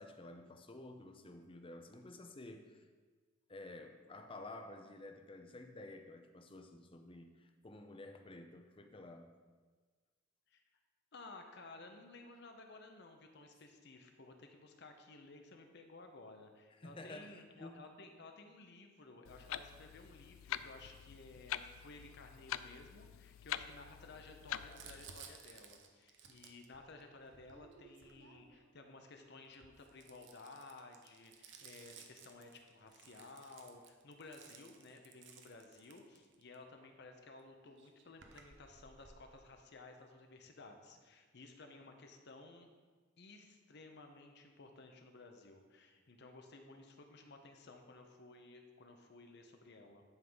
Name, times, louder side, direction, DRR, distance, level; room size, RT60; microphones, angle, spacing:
voice 1, 0.0-2.8 3.5-9.3 16.8-17.8, left 2 dB, 25° left, 6 dB, 0.6 m, -52 dB
voice 2, 11.1-42.7 43.2-50.0, left 3 dB, 55° left, 4 dB, 0.9 m, -56 dB
Clock, 19.3-25.2, left 11 dB, 80° left, 0.3 m, -46 dB
Crumpling crinkling, 24.7-28.8 29.5-36.6 37.4-37.5 37.7-39.3, right 6 dB, 65° right, 0.8 m, -58 dB
10.5 x 3.8 x 5.5 m, 1.4 s
head